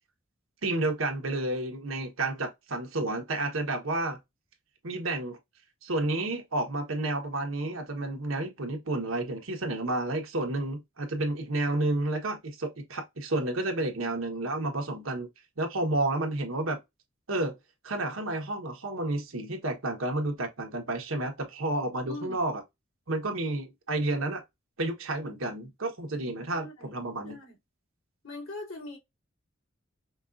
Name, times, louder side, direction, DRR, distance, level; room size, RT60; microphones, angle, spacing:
voice 1, 0.6-4.2 4.8-5.4 5.8-15.3 15.6-16.8 17.3-17.6 17.8-22.6 23.1-24.4 24.8-27.4, right 2 dB, 70° right, 1.2 m, -31 dB
voice 2, 22.1-22.5 26.5-26.9 27.2-27.6 28.2-29.0, left 2 dB, 85° left, 2.9 m, -41 dB
5.3 x 2.4 x 2.5 m
head